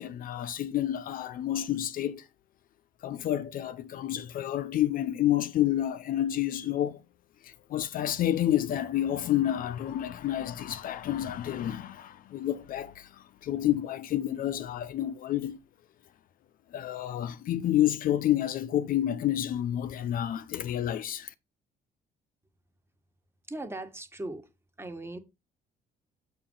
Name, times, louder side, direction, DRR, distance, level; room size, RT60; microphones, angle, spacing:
voice 1, 0.0-2.2 3.0-7.0 7.4-15.6 16.7-21.3, left 12 dB, 55° left, 0.6 m, -29 dB
voice 2, 23.5-24.5 24.8-25.2, right 2 dB, 15° right, 1.4 m, -38 dB
6.7 x 6.2 x 3.8 m
cardioid pair, 110°, 17 cm